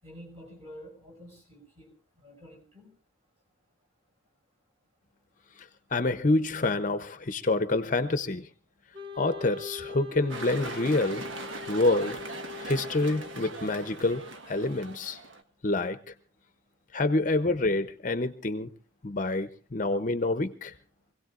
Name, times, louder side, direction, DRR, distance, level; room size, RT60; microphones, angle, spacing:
voice 1, 0.0-1.9 2.2-2.9, equal, 30° right, 0 dB, 5.8 m, -48 dB
voice 2, 5.9-8.4 9.2-11.3 11.7-12.2 12.6-15.2 15.6-16.0 16.9-18.7 19.0-20.7, left 2 dB, 45° left, 10 dB, 0.7 m, -27 dB
Wind instrument woodwind instrument, 8.9-14.1, left 5 dB, 65° right, 1.5 m, -43 dB
sound 1, 10.3-15.4, right 3 dB, 90° right, 1.4 m, -40 dB
26.0 x 17.0 x 2.5 m, 0.31 s
head